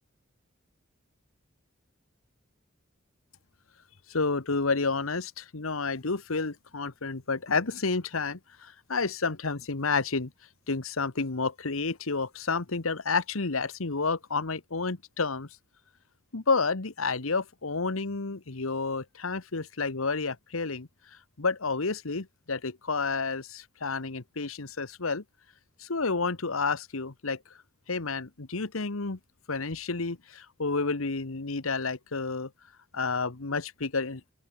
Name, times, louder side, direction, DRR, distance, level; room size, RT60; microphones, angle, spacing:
voice 1, 4.1-10.3 10.7-15.5 16.3-20.9 21.4-25.2 25.8-27.4 27.9-29.2 29.5-32.5 32.9-34.2, left 4 dB, 90° left, 1.4 m, -30 dB
open air
head